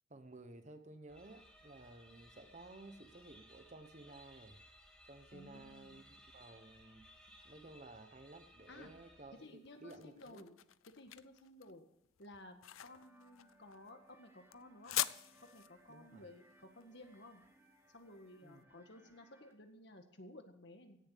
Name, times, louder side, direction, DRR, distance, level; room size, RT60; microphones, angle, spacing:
voice 1, 0.1-4.6 5.0-7.1 7.4-10.4 15.9-16.2 18.4-18.6, right 2 dB, 35° right, 9 dB, 1.0 m, -55 dB
sound 1, 1.1-9.8, equal, 5° left, 1.9 m, -62 dB
voice 2, 5.3-6.0 8.7-8.9 9.4-10.6 10.9-11.9 12.2-15.0 15.5-17.4 17.9-21.0, left 1 dB, 55° left, 6 dB, 1.8 m, -56 dB
sound 2, 9.4-18.4, left 14 dB, 85° left, 0.5 m, -45 dB
sound 3, 12.8-19.5, right 1 dB, 10° right, 1.4 m, -67 dB
17.0 x 7.1 x 8.5 m, 0.81 s
head